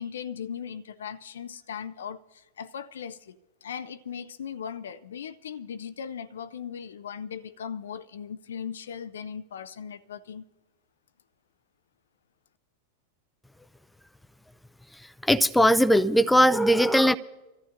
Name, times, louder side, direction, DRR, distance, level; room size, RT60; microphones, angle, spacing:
voice 1, 0.0-10.4, left 7 dB, 65° left, 0.4 m, -38 dB
voice 2, 15.2-17.2, equal, 5° left, 0.4 m, -19 dB
26.5 x 14.0 x 2.5 m
figure-of-eight pair, 90°, 0 cm